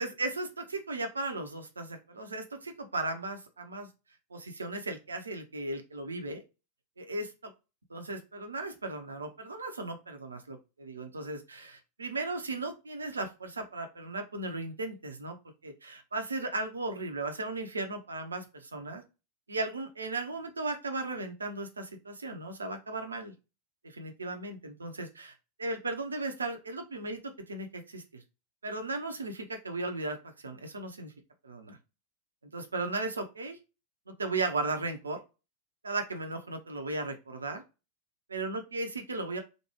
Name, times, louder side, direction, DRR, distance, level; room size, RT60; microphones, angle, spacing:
voice 1, 0.0-3.9 4.3-6.4 7.0-7.5 7.9-15.4 15.6-19.0 19.5-23.3 23.8-25.3 25.6-28.2 28.6-31.1 31.4-31.8 32.4-33.6 34.1-35.2 35.8-37.6 38.3-39.4, right 2 dB, 75° right, 5 dB, 0.6 m, -36 dB
3.1 x 2.2 x 3.0 m, 0.28 s
figure-of-eight pair, 90°, 0 cm